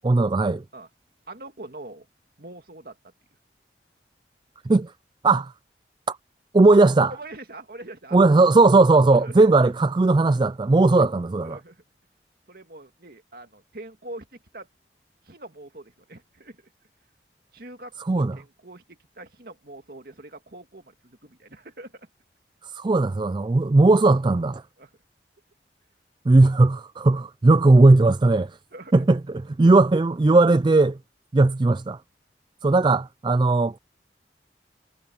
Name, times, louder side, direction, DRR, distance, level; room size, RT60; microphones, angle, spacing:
voice 1, 0.0-0.6 4.6-4.9 5.2-5.5 6.1-6.2 6.5-7.1 8.1-11.6 18.1-18.3 22.6-24.6 26.3-28.6 28.9-31.0 31.3-32.0 32.6-33.8, right 2 dB, 25° right, 0.4 m, -18 dB
voice 2, 1.3-2.1 2.4-3.1 7.1-8.2 9.1-9.5 11.4-11.8 12.5-14.7 15.2-16.7 17.5-22.1 24.8-24.9 28.7-29.0, right 2 dB, 55° right, 2.2 m, -43 dB
head